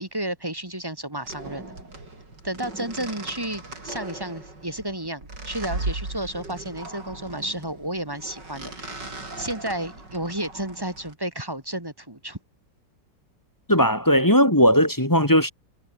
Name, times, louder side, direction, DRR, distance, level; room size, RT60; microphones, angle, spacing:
voice 1, 0.0-1.7 2.4-9.0 9.4-12.4, right 1 dB, 15° right, 2.3 m, -32 dB
sound 1, 1.2-11.1, right 2 dB, 75° right, 7.1 m, -37 dB
voice 2, 13.7-15.5, equal, 10° left, 1.7 m, -18 dB
omnidirectional pair, 1.9 m